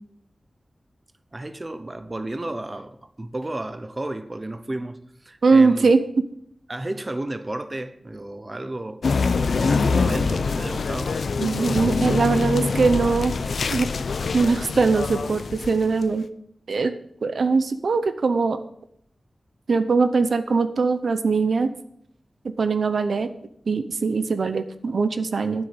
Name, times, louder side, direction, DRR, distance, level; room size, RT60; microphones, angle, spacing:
voice 1, 1.3-5.9 6.7-9.0 9.5-11.2, right 1 dB, 25° right, 0.8 m, -32 dB
voice 2, 5.4-6.1 11.4-13.3 13.7-13.9 14.3-16.3 16.7-16.9 17.2-18.6 19.7-21.7 22.4-23.3 23.7-25.6, right 4 dB, 75° right, 0.8 m, -21 dB
sound 1, 9.0-16.0, left 4 dB, 85° left, 0.6 m, -24 dB
9.7 x 7.7 x 7.8 m
wide cardioid pair, 110°, 0 cm